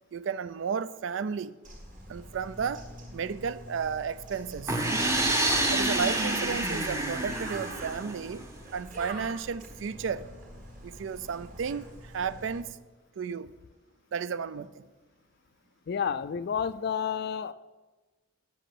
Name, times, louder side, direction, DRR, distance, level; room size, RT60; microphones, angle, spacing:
voice 1, 0.1-1.6 2.1-2.8 3.1-4.9 5.7-8.5 8.7-10.3 10.8-12.8 13.2-13.5 14.1-14.9, right 6 dB, 65° right, 0.3 m, -33 dB
Bird, 1.6-12.6, right 1 dB, 40° right, 1.7 m, -45 dB
sound 1, 4.7-8.4, right 1 dB, 15° right, 0.8 m, -28 dB
voice 2, 15.9-17.5, left 7 dB, 50° left, 0.3 m, -30 dB
8.0 x 5.7 x 6.5 m
head